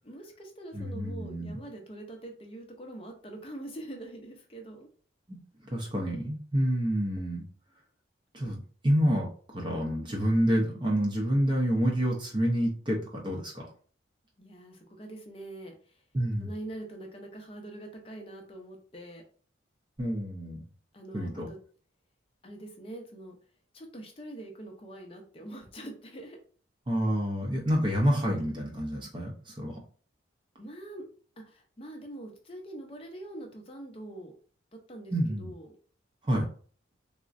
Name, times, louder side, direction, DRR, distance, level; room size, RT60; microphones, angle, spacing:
voice 1, 0.0-4.9 14.4-16.0 16.4-19.2 20.9-21.6 22.4-23.3 23.7-26.4 30.6-31.0 31.4-34.3 34.7-35.1 35.4-35.8, right 1 dB, 30° left, 3 dB, 0.5 m, -44 dB
voice 2, 0.7-1.6 5.3-5.4 5.7-7.5 8.3-9.3 9.5-13.7 16.1-16.5 20.0-20.6 21.1-21.5 26.9-29.8 35.1-35.5 36.3-36.5, equal, 25° right, 0 dB, 0.5 m, -28 dB
3.6 x 2.1 x 2.4 m, 0.44 s
head